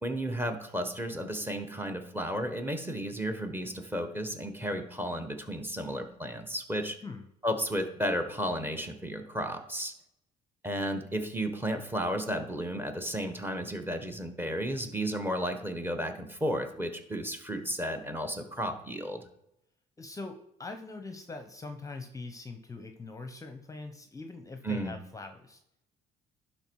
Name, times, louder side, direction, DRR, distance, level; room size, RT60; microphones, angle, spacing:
voice 1, 0.0-7.0 7.4-9.9 10.6-19.2 24.6-24.9, equal, 10° right, 6 dB, 1.3 m, -33 dB
voice 2, 20.0-25.6, left 3 dB, 20° left, 7 dB, 0.8 m, -42 dB
11.5 x 4.4 x 4.7 m, 0.77 s
cardioid pair, 110°, 17 cm